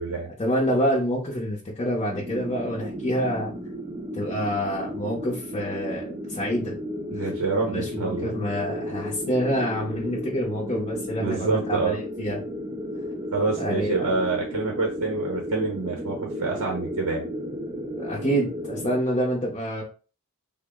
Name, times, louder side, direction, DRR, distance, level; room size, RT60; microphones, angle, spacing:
voice 1, 0.4-3.5 4.1-6.7 7.2-7.3 7.6-12.4 13.6-14.1 18.0-19.8, equal, 25° left, -3 dB, 0.6 m, -27 dB
sound 1, 2.1-19.0, equal, 20° right, 0.3 m, -34 dB
voice 2, 7.1-8.3 11.2-12.0 13.3-17.3, right 3 dB, 80° right, 0 dB, 0.8 m, -27 dB
3.5 x 2.0 x 3.5 m, 0.36 s
head